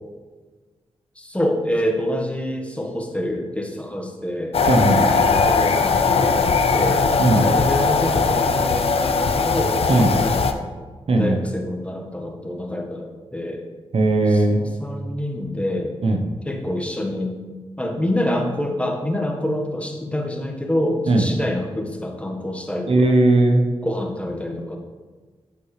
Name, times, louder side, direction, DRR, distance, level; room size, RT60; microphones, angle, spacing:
voice 1, 1.1-4.6 5.4-7.0 7.4-10.7 11.2-13.6 14.3-15.9 16.4-17.3 17.8-23.1 23.8-24.8, left 1 dB, 10° left, 2 dB, 1.4 m, -27 dB
sound 1, 4.5-10.5, left 4 dB, 65° left, 0.6 m, -19 dB
voice 2, 4.7-5.1 7.2-7.4 9.9-10.1 11.1-11.4 13.9-14.6 16.0-16.2 21.1-21.2 22.9-23.6, right 2 dB, 65° right, 4 dB, 0.9 m, -17 dB
8.5 x 6.2 x 3.3 m, 1.4 s
cardioid pair, 50°, 11 cm